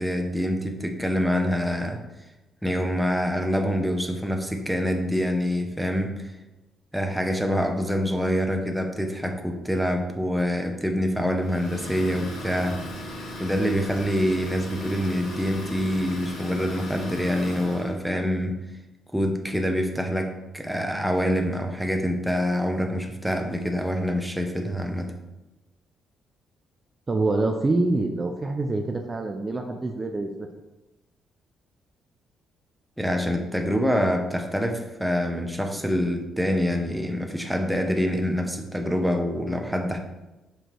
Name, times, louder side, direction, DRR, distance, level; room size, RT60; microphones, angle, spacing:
voice 1, 0.0-2.0 2.6-6.3 6.9-13.0 13.4-18.6 19.1-25.1 33.0-40.0, equal, ahead, 4 dB, 0.9 m, -26 dB
Idling, 11.4-17.9, left 1 dB, 90° left, 1.9 m, -37 dB
voice 2, 27.1-30.5, right 2 dB, 30° right, 4 dB, 0.6 m, -26 dB
6.0 x 5.0 x 4.7 m, 1.1 s
cardioid pair, 90°, 0 cm